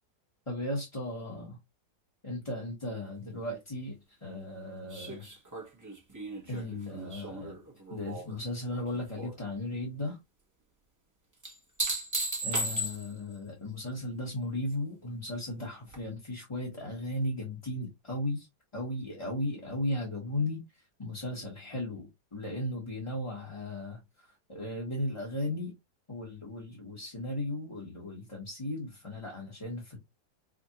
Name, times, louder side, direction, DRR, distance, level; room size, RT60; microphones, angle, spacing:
voice 1, 0.5-1.6 2.2-5.3 6.4-7.6 7.9-10.2 12.4-18.5 18.7-20.6 21.0-25.7 26.1-30.0, left 1 dB, 20° left, 1.2 m, -36 dB
sound 1, 4.9-8.4 8.7-9.3 11.4-13.3 15.9-16.0, right 1 dB, 15° right, 0.8 m, -36 dB
5.0 x 2.6 x 2.8 m
omnidirectional pair, 1.9 m